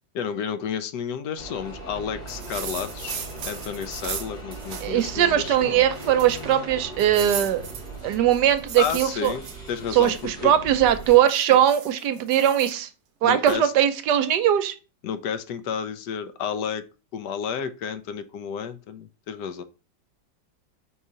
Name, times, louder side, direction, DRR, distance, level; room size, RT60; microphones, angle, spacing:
voice 1, 0.1-5.8 8.8-9.4 9.7-10.5 11.4-11.6 13.2-13.7 15.0-16.8 17.1-19.6, left 7 dB, 75° left, 11 dB, 1.1 m, -31 dB
sound 1, 1.4-11.2, right 2 dB, 55° left, 3.6 m, -39 dB
sound 2, 2.3-5.1 5.5-5.6 5.9-6.5 7.0-10.2 10.8-12.7 13.5-13.6, right 7 dB, 55° right, 0.8 m, -37 dB
voice 2, 4.8-7.6 8.0-9.3 9.9-12.9 13.2-14.7, right 11 dB, 75° right, 11 dB, 1.1 m, -20 dB
5.4 x 4.8 x 3.8 m, 0.32 s
omnidirectional pair, 2.0 m